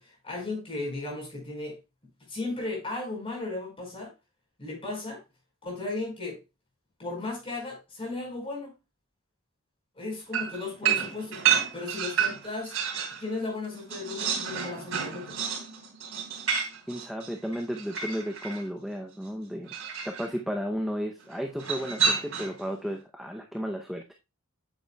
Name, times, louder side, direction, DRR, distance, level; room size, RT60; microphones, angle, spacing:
voice 1, 0.0-1.8 2.3-4.1 4.6-5.2 5.6-6.4 7.0-8.7 9.9-11.4 11.7-12.7 13.2-15.4, left 2 dB, 25° left, 4.6 m, -35 dB
sound 1, 10.3-13.2 13.6-18.6 19.7-20.3 21.6-22.6, right 7 dB, 80° right, 3.2 m, -30 dB
voice 2, 16.9-19.7 20.0-24.1, equal, ahead, 0.6 m, -33 dB
8.4 x 7.9 x 2.2 m
head